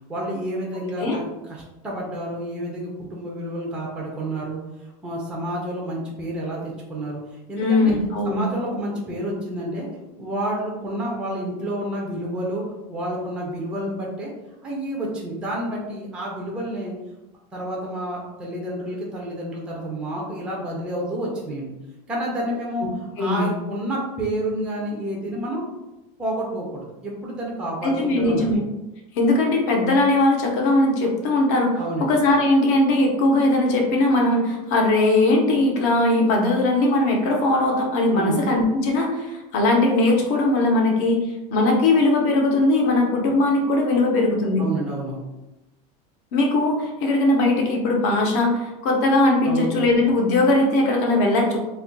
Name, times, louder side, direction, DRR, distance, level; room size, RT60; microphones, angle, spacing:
voice 1, 0.1-4.6 5.0-7.2 7.5-8.0 8.2-9.9 10.2-12.6 12.9-14.3 14.6-16.9 17.5-21.7 22.1-22.9 23.2-25.6 26.2-28.6 31.8-32.1 38.1-38.4 44.6-45.2 49.4-49.7, right 1 dB, 5° right, -3 dB, 0.4 m, -29 dB
voice 2, 7.6-8.4 23.2-23.5 27.8-28.6 29.1-41.2 41.5-44.6 46.3-51.6, left 2 dB, 50° left, 1 dB, 0.7 m, -20 dB
2.4 x 2.2 x 3.8 m, 1.0 s
supercardioid pair, 175°, 19 cm